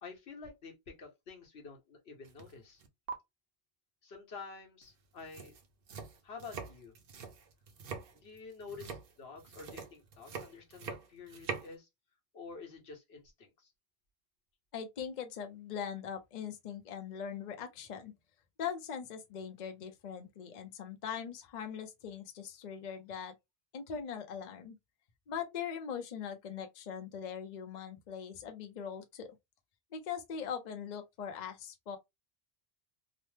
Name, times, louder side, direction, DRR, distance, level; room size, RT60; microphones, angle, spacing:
voice 1, 0.0-2.8 4.0-5.5 6.2-6.9 8.1-11.9 12.3-13.7, left 4 dB, 80° left, 1.2 m, -49 dB
sound 1, 2.2-2.5 2.8-3.1 4.8-4.9 5.2-11.7, right 5 dB, 65° right, 0.8 m, -44 dB
voice 2, 14.7-18.1 18.6-23.3 23.7-24.8 25.3-29.4 29.9-32.0, left 7 dB, 50° left, 0.6 m, -41 dB
3.0 x 2.0 x 3.2 m
omnidirectional pair, 1.0 m